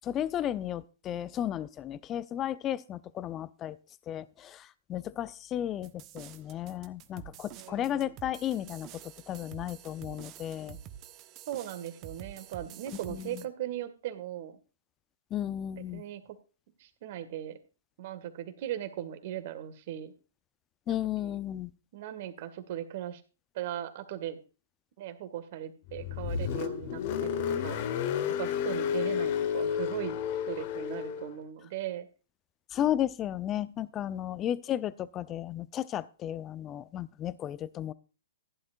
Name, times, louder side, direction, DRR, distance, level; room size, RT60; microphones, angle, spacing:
voice 1, 0.0-3.8 4.1-10.8 13.1-13.4 15.3-16.0 20.9-21.7 32.7-37.9, left 11 dB, 25° left, 17 dB, 0.7 m, -34 dB
sound 1, 5.8-13.4, right 11 dB, 30° right, 1.2 m, -48 dB
voice 2, 7.6-8.1 11.5-14.6 15.9-16.4 16.8-17.6 18.0-20.1 20.9-21.0 21.2-21.4 21.9-23.2 23.5-24.4 25.0-27.8 28.4-32.1, right 11 dB, 50° right, 10 dB, 2.0 m, -38 dB
Car, 25.9-31.3, left 8 dB, 45° left, 1.5 m, -31 dB
15.5 x 11.0 x 2.6 m, 0.34 s
hypercardioid pair, 120°, 0 cm